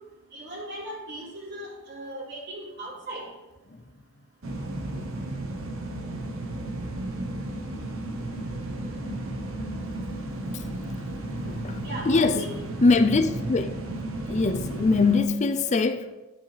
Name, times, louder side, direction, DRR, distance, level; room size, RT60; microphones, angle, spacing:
voice 1, 0.3-3.3 11.8-12.6, right 1 dB, 55° right, 3.6 m, -38 dB
sound 1, 4.4-15.2, right 1 dB, 75° right, 1.1 m, -33 dB
voice 2, 11.5-11.8 12.1-12.4 12.8-13.8 14.3-16.1, left 3 dB, 35° left, 0.5 m, -22 dB
11.0 x 9.9 x 3.3 m
head